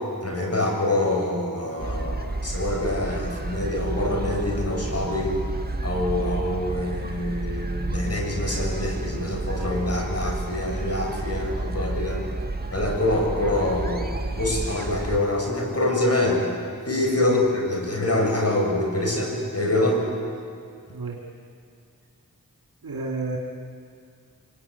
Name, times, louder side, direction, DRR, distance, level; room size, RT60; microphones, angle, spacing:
voice 1, 0.2-5.3 5.8-12.2 12.7-16.4 16.9-20.0, left 1 dB, 45° left, 0 dB, 7.3 m, -25 dB
sound 1, 1.8-15.2, right 2 dB, 25° right, 1.8 m, -30 dB
voice 2, 22.8-23.4, right 4 dB, 85° right, -1 dB, 2.6 m, -30 dB
25.0 x 23.5 x 9.5 m, 2.4 s
cardioid pair, 45°, 35 cm